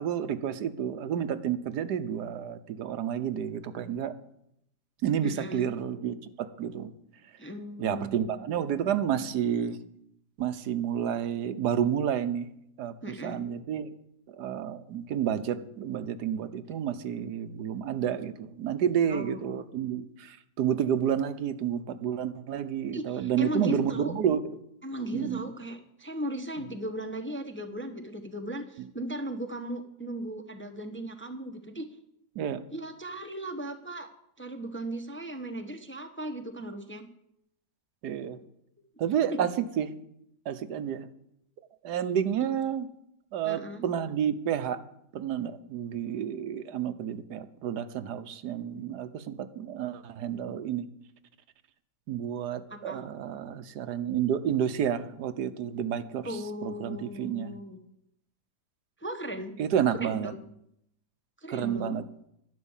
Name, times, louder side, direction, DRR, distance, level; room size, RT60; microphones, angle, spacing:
voice 1, 0.0-4.1 5.0-6.9 7.8-9.8 10.4-12.5 12.8-13.9 14.3-24.4 25.1-25.5 28.8-28.9 32.3-32.6 38.0-38.4 39.0-39.9 40.4-41.1 41.8-42.9 43.3-44.8 45.1-50.9 52.1-57.6 59.6-60.3 61.5-62.0, right 9 dB, 85° right, 11 dB, 1.4 m, -30 dB
voice 2, 5.2-5.7 7.4-8.3 13.0-13.4 19.1-19.7 22.9-24.1 24.8-31.9 32.7-34.1 34.4-37.0 43.4-43.8 52.7-53.0 56.2-57.8 59.0-59.5 59.9-60.2 61.4-62.0, right 1 dB, 10° left, 5 dB, 0.8 m, -37 dB
11.0 x 11.0 x 7.3 m, 0.77 s
omnidirectional pair, 1.7 m